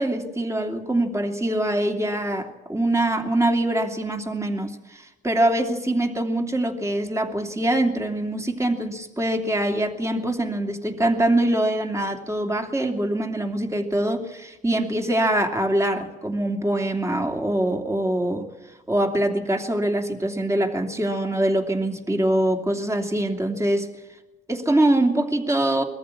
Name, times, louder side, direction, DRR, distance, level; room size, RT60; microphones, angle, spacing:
voice 1, 0.0-18.5 18.9-23.9 24.5-25.8, right 1 dB, 15° right, 3 dB, 2.9 m, -24 dB
22.0 x 14.5 x 8.6 m, 1.1 s
cardioid pair, 90°, 20 cm